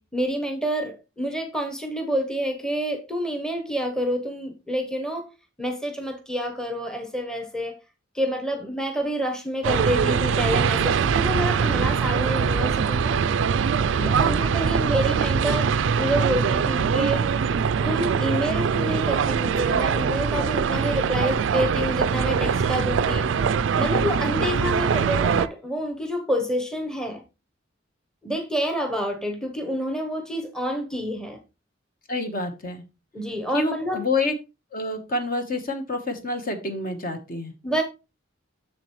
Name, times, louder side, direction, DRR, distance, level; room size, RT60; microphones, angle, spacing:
voice 1, 0.0-5.3 5.6-7.8 8.1-13.2 14.1-17.2 17.8-23.3 23.8-27.2 28.2-31.4 33.1-34.1 37.6-37.8, equal, 5° left, 0.9 m, -28 dB
sound 1, 9.6-25.5, right 6 dB, 65° right, 0.4 m, -22 dB
voice 2, 14.0-14.4 32.1-32.8 33.5-34.3 34.7-37.5, left 2 dB, 45° left, 1.2 m, -28 dB
7.6 x 6.7 x 3.1 m
head